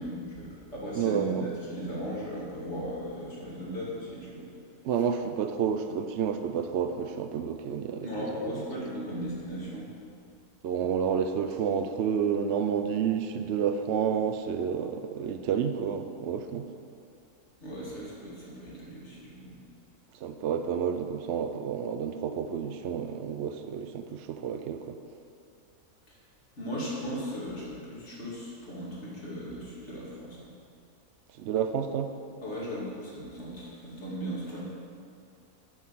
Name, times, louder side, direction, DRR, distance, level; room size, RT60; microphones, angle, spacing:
voice 1, 0.0-4.5 8.0-9.9 17.6-19.6 26.1-26.2 26.6-30.5 32.4-34.6, equal, 45° left, -6 dB, 2.8 m, -37 dB
voice 2, 0.9-1.5 4.8-8.7 10.6-16.7 20.1-25.0 31.3-32.1, right 7 dB, 65° right, 7 dB, 0.7 m, -30 dB
8.9 x 6.3 x 7.5 m, 2.5 s
omnidirectional pair, 1.6 m